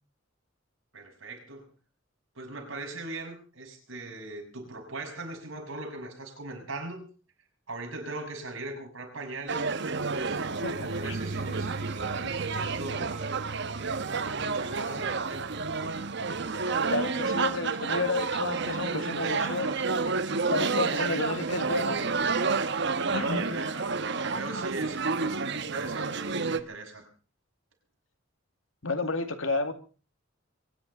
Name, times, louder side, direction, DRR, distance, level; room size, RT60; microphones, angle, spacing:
voice 1, 0.9-1.7 2.3-7.1 7.7-10.4 10.7-13.5 14.1-15.6 19.2-19.8 22.7-27.1, right 2 dB, 90° right, 2 dB, 6.5 m, -40 dB
sound 1, 9.5-26.6, right 4 dB, 60° right, 1.1 m, -30 dB
sound 2, 10.0-19.8, right 3 dB, 35° right, 0.7 m, -42 dB
voice 2, 10.6-11.2 12.2-12.3 16.9-19.7 20.4-22.2 23.1-23.7 28.8-29.7, left 3 dB, 80° left, 8 dB, 2.3 m, -31 dB
23.5 x 10.5 x 5.3 m, 0.37 s
head